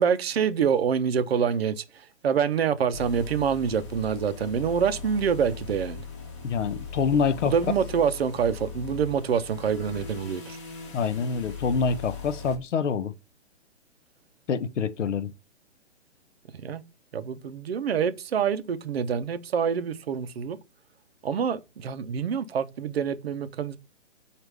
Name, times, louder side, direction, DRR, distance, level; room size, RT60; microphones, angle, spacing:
voice 1, 0.0-1.8 2.2-6.0 7.4-10.6 16.6-16.8 17.1-20.6 21.2-23.8, right 7 dB, 60° right, 0.5 m, -26 dB
sound 1, 2.9-12.6, left 5 dB, 25° left, 0.9 m, -39 dB
voice 2, 6.4-7.6 10.9-13.1 14.5-15.3, left 5 dB, 85° left, 0.7 m, -26 dB
4.8 x 2.4 x 3.3 m
hypercardioid pair, 160°, 36 cm